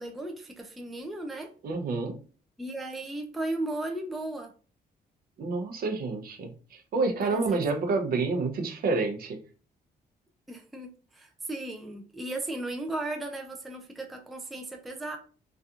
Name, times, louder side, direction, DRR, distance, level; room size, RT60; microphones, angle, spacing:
voice 1, 0.0-1.5 2.6-4.5 7.3-7.6 10.5-15.2, right 2 dB, ahead, 3 dB, 0.3 m, -36 dB
voice 2, 1.6-2.2 5.4-9.4, right 3 dB, 60° right, 5 dB, 0.6 m, -28 dB
2.7 x 2.4 x 2.4 m, 0.38 s
cardioid pair, 135°, 17 cm